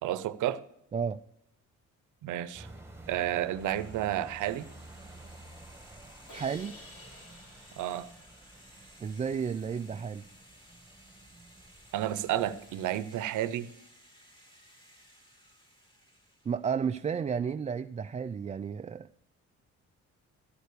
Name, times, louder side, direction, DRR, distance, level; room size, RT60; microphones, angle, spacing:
voice 1, 0.0-0.6 2.2-2.7 3.1-4.7 7.8-8.1 11.9-13.7, right 12 dB, 80° right, 0.7 m, -31 dB
sound 1, 2.5-13.0, right 2 dB, 10° right, 1.7 m, -52 dB
sound 2, 3.6-16.6, equal, 15° left, 2.6 m, -57 dB
Crash cymbal, 6.3-9.4, left 1 dB, 70° left, 3.6 m, -53 dB
voice 2, 6.3-6.7 9.0-10.2 16.5-19.1, right 6 dB, 25° right, 0.3 m, -32 dB
13.0 x 6.8 x 6.6 m
cardioid pair, 90°, 30 cm